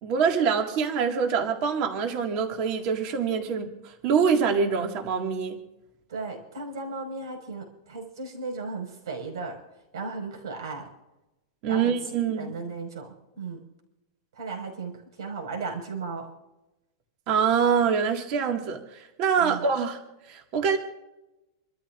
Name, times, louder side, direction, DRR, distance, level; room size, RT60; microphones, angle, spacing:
voice 1, 0.0-3.7 4.0-5.6 11.6-12.5 17.3-18.8 19.2-20.0 20.3-20.8, right 6 dB, 30° right, 3 dB, 1.9 m, -24 dB
voice 2, 6.1-9.6 9.9-10.9 11.7-13.6 14.3-16.3 19.4-19.6, right 4 dB, 80° right, 2 dB, 5.3 m, -35 dB
28.5 x 13.5 x 2.5 m, 0.97 s
supercardioid pair, 180°, 2 cm